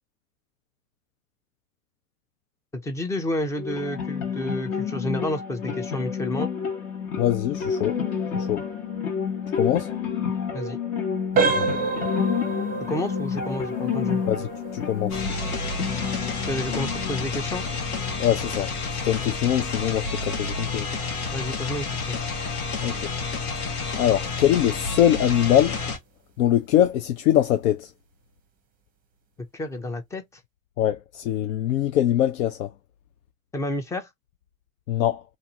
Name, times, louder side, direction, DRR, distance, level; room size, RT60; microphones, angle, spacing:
voice 1, 2.7-6.5 10.5-10.8 12.9-14.2 16.5-17.7 21.3-22.2 29.5-30.2 33.5-34.1, left 1 dB, 5° left, 0.4 m, -30 dB
sound 1, 3.6-18.5, left 6 dB, 45° left, 1.1 m, -30 dB
voice 2, 7.2-8.0 8.3-8.6 9.6-9.9 11.6-11.8 14.3-15.2 18.2-20.9 22.8-23.1 24.0-25.8 26.4-27.9 30.8-32.7 34.9-35.2, left 11 dB, 70° left, 0.6 m, -23 dB
sound 2, 11.3-22.0 22.4-22.6 23.2-23.3 23.8-23.9, right 4 dB, 20° right, 0.7 m, -31 dB
sound 3, 15.1-26.0, left 4 dB, 85° left, 1.1 m, -30 dB
2.6 x 2.5 x 2.7 m
hypercardioid pair, 110°, 43 cm